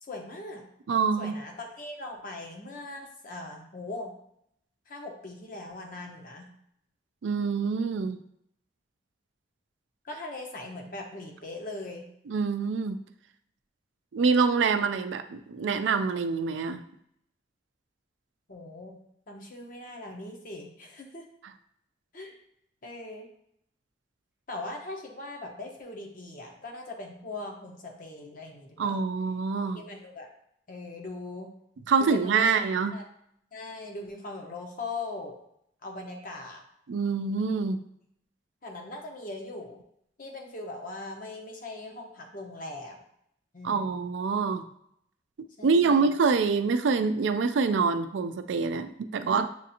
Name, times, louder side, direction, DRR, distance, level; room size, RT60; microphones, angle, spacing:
voice 1, 0.1-0.6 1.2-4.1 4.9-6.5 10.0-12.1 18.5-19.0 19.3-21.2 22.1-22.3 22.8-23.3 24.5-29.0 29.7-30.3 30.7-31.5 32.0-32.5 32.9-33.0 33.5-35.4 35.8-36.6 38.6-39.8 40.2-43.0 43.5-44.0 45.6-46.1, left 2 dB, 50° left, 1 dB, 0.9 m, -40 dB
voice 2, 0.9-1.3 7.2-8.2 12.3-13.0 14.1-16.8 28.8-29.8 31.9-32.9 36.9-37.8 43.6-44.6 45.6-49.5, right 5 dB, 90° right, 9 dB, 0.4 m, -25 dB
7.1 x 2.5 x 2.8 m, 0.72 s
head